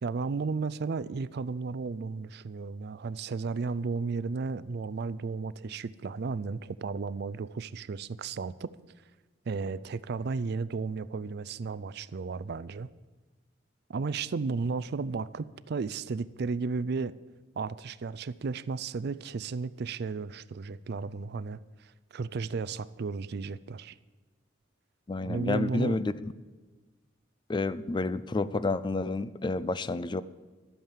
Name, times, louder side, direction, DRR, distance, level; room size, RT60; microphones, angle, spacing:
voice 1, 0.0-8.7 9.5-12.9 13.9-17.2 17.6-24.0 25.2-26.0, right 4 dB, 60° right, 18 dB, 0.4 m, -34 dB
voice 2, 25.1-26.1 27.5-30.2, left 3 dB, 25° left, 16 dB, 0.4 m, -29 dB
12.5 x 8.7 x 7.4 m, 1.2 s
head